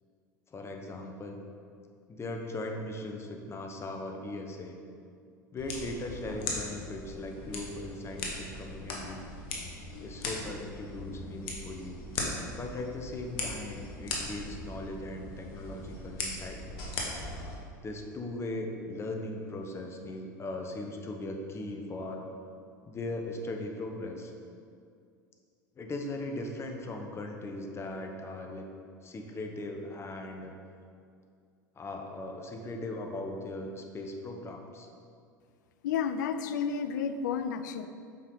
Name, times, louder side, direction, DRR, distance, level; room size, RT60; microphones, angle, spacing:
voice 1, 0.5-1.4 2.1-4.8 5.5-9.2 10.0-12.0 12.6-16.6 17.8-22.2 22.8-24.3 25.8-28.7 29.0-30.5 31.7-34.9, left 2 dB, 25° left, 3 dB, 1.1 m, -39 dB
sound 1, 5.6-17.6, left 2 dB, 55° left, 1.5 m, -39 dB
voice 2, 35.8-37.9, left 6 dB, 70° left, 10 dB, 0.5 m, -31 dB
7.6 x 5.6 x 4.0 m, 2.3 s
hypercardioid pair, 80°, 10 cm